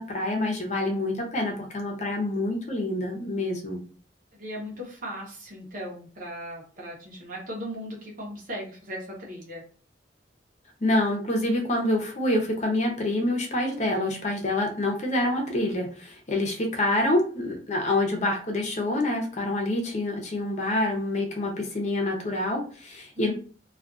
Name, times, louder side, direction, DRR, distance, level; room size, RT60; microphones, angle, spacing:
voice 1, 0.0-3.8 10.8-23.3, left 1 dB, 45° left, 1 dB, 0.7 m, -27 dB
voice 2, 4.4-9.6 23.2-23.3, equal, 50° right, -3 dB, 0.8 m, -37 dB
2.4 x 2.4 x 2.5 m, 0.41 s
head